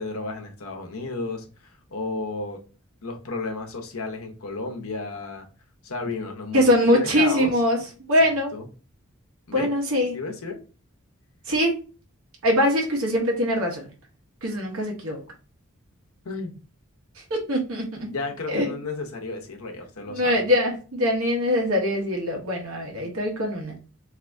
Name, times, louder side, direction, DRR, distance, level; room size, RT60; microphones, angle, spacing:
voice 1, 0.0-2.6 3.0-5.5 5.8-7.6 8.2-8.7 9.5-9.7 10.1-10.6 16.2-16.6 18.1-20.4, left 3 dB, 80° left, 3 dB, 0.8 m, -33 dB
voice 2, 6.5-7.8 8.1-8.5 9.5-10.1 11.5-11.8 12.4-13.9 14.4-15.2 17.3-18.1 18.5-18.7 20.1-23.7, left 1 dB, 75° right, 0 dB, 0.9 m, -22 dB
2.6 x 2.6 x 3.3 m, 0.35 s
head